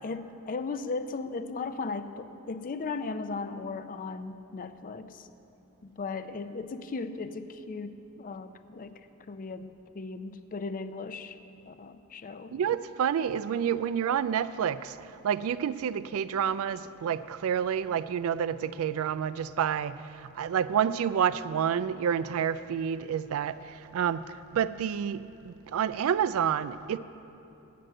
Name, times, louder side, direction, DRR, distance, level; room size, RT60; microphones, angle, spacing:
voice 1, 0.0-5.3 5.8-9.0 9.3-11.4 11.7-12.6, left 4 dB, 40° left, 11 dB, 0.4 m, -37 dB
voice 2, 12.5-14.9 15.2-24.2 24.5-27.0, right 8 dB, 70° right, 15 dB, 0.3 m, -29 dB
9.3 x 7.6 x 7.6 m, 2.8 s
head